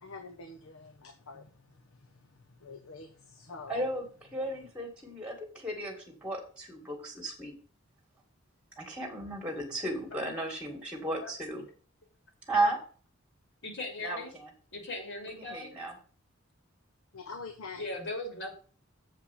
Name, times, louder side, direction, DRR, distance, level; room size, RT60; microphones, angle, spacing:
voice 1, 0.0-1.4 2.6-3.1 3.3-3.8 17.1-17.8, left 4 dB, 85° left, 1.0 m, -45 dB
voice 2, 3.7-7.5 8.8-11.7 12.5-12.8 14.0-14.5 15.3-15.9, right 1 dB, 5° right, 2.0 m, -34 dB
voice 3, 13.6-14.3 14.7-15.7 17.7-18.6, left 2 dB, 60° left, 2.9 m, -38 dB
7.5 x 5.0 x 7.1 m
head